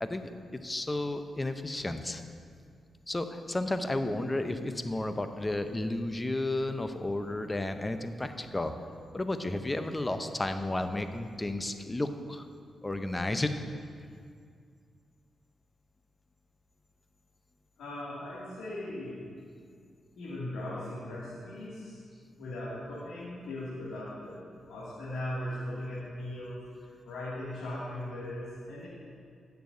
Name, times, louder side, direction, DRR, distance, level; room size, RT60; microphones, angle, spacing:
voice 1, 0.0-2.2 3.1-8.7 9.1-12.5 12.8-13.5, left 2 dB, 25° left, 8 dB, 0.7 m, -32 dB
voice 2, 17.8-19.2 20.2-22.0 22.4-28.9, left 1 dB, 80° left, -10 dB, 2.3 m, -39 dB
15.5 x 6.8 x 2.7 m, 2.2 s
supercardioid pair, 50°, 0 cm